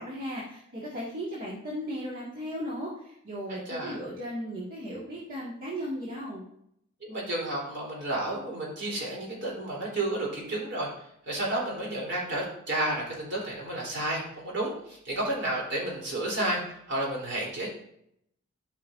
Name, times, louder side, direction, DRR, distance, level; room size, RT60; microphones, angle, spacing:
voice 1, 0.0-6.4, equal, 40° right, -7 dB, 1.8 m, -36 dB
voice 2, 3.5-4.0 7.0-10.9 11.2-17.7, right 1 dB, 60° right, -3 dB, 3.4 m, -31 dB
12.5 x 5.7 x 2.6 m, 0.73 s
head